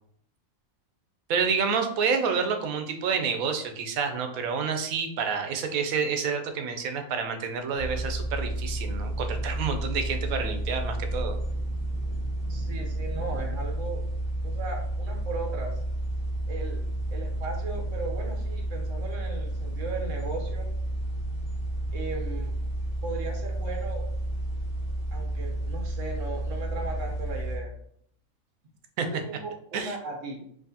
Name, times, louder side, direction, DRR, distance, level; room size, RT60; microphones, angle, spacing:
voice 1, 1.3-11.3 29.0-29.1 29.7-30.0, right 5 dB, 85° right, 6 dB, 1.0 m, -28 dB
sound 1, 7.7-27.6, right 1 dB, 30° left, 1.1 m, -31 dB
voice 2, 12.5-14.0 14.4-15.8 16.5-16.8 17.1-20.7 21.9-22.5 23.0-24.0 25.1-27.7 29.0-30.4, right 3 dB, 65° right, 1 dB, 1.2 m, -37 dB
4.7 x 2.6 x 2.7 m, 0.66 s
omnidirectional pair, 1.4 m